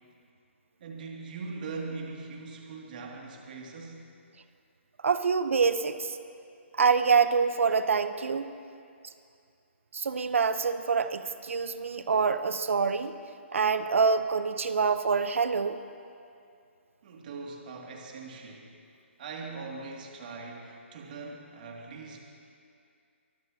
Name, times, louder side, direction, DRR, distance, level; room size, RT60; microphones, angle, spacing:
voice 1, 0.8-4.1 17.0-18.7 19.2-22.2, right 4 dB, 45° right, -1 dB, 2.4 m, -41 dB
voice 2, 5.0-6.2 6.8-8.5 9.9-13.1 13.5-15.8, right 5 dB, 85° right, 11 dB, 0.9 m, -26 dB
24.0 x 21.0 x 2.9 m, 2.4 s
hypercardioid pair, 165°, 7 cm